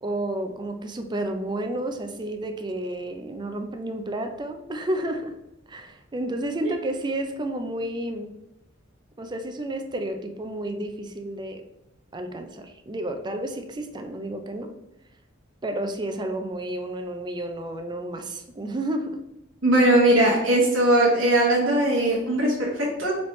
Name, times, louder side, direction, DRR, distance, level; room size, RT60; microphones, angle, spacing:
voice 1, 0.0-5.4 5.7-8.3 9.2-11.6 12.1-14.8 15.6-19.2, right 1 dB, 20° right, 6 dB, 0.4 m, -31 dB
voice 2, 19.6-23.1, right 1 dB, 80° right, -5 dB, 1.0 m, -20 dB
4.2 x 3.2 x 3.1 m, 0.88 s
head